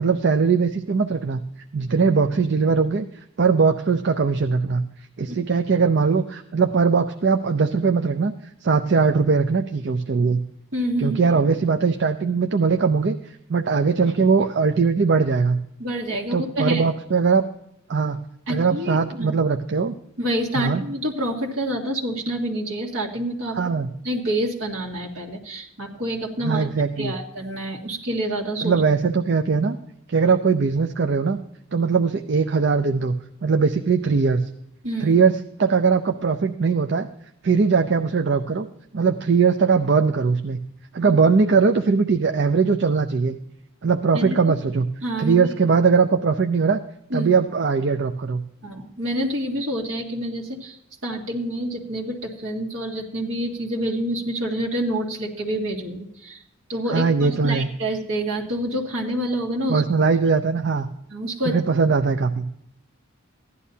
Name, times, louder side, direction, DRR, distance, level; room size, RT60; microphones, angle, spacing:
voice 1, 0.0-1.4 1.7-3.1 3.4-4.8 5.2-8.3 8.6-10.4 11.0-13.2 13.5-15.6 16.3-17.4 17.9-18.2 18.5-19.9 20.6-20.8 23.6-23.9 26.4-27.1 28.6-29.8 30.1-31.4 31.7-33.1 33.4-34.4 35.0-37.1 37.4-38.7 38.9-40.6 40.9-43.4 43.8-44.9 45.2-46.8 47.1-48.4 56.9-57.7 59.7-60.9 61.5-62.5, right 5 dB, 50° right, 7 dB, 0.5 m, -20 dB
voice 2, 10.7-11.4 11.7-11.8 15.8-16.9 18.5-19.3 20.2-23.7 24.0-26.7 27.0-28.8 34.8-35.2 41.0-41.1 44.1-44.5 45.0-45.5 47.1-47.3 48.6-50.8 51.0-56.4 56.7-59.8 61.1-61.5, right 1 dB, 70° right, -1 dB, 2.0 m, -27 dB
15.5 x 11.0 x 2.8 m, 0.74 s
head